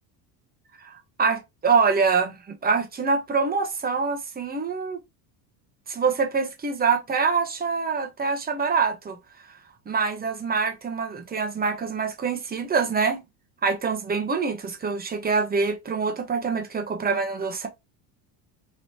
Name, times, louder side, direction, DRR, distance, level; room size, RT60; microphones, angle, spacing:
voice 1, 0.8-5.0 5.9-9.2 9.9-13.2 13.6-17.7, right 5 dB, 20° right, 0.8 m, -25 dB
3.1 x 2.9 x 2.7 m
cardioid pair, 125°, 44 cm